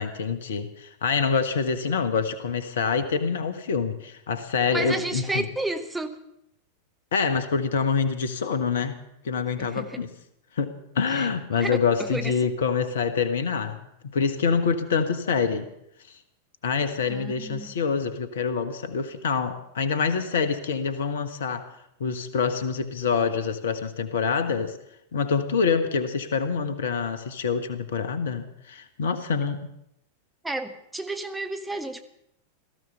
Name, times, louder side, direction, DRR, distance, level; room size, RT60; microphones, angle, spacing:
voice 1, 0.0-5.4 7.1-10.1 10.6-15.7 16.6-21.7 22.0-24.8 25.1-29.6, left 5 dB, 60° left, 1.5 m, -26 dB
voice 2, 4.7-6.2 9.6-10.0 11.1-11.3 11.6-12.3 17.1-17.7 30.4-32.0, right 2 dB, 5° right, 1.3 m, -32 dB
18.0 x 14.0 x 5.7 m
figure-of-eight pair, 90°, 0 cm